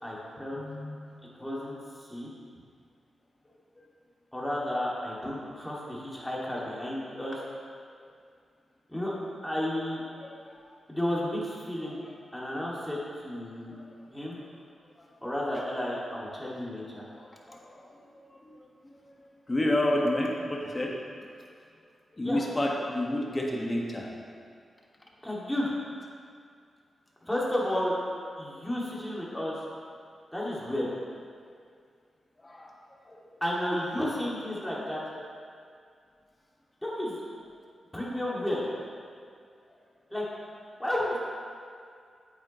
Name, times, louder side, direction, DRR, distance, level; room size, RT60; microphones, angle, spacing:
voice 1, 0.0-0.6 1.3-2.3 4.3-7.4 8.9-9.1 9.4-10.0 10.9-12.0 12.3-13.7 14.1-14.4 15.2-17.0 22.2-22.4 25.2-25.7 27.2-27.9 28.4-29.6 30.3-30.9 33.4-35.0 36.8-37.2 37.9-38.6 40.1-40.2 40.8-41.2, left 1 dB, 5° left, -6 dB, 2.3 m, -32 dB
voice 2, 0.6-1.0 10.2-10.3 13.7-13.8 17.1-18.5 19.1-20.9 21.2-21.3 22.1-24.1 32.4-32.7 33.1-33.2, left 1 dB, 25° left, -1 dB, 1.5 m, -30 dB
8.6 x 8.6 x 3.1 m, 2.3 s
cardioid pair, 60°, 0 cm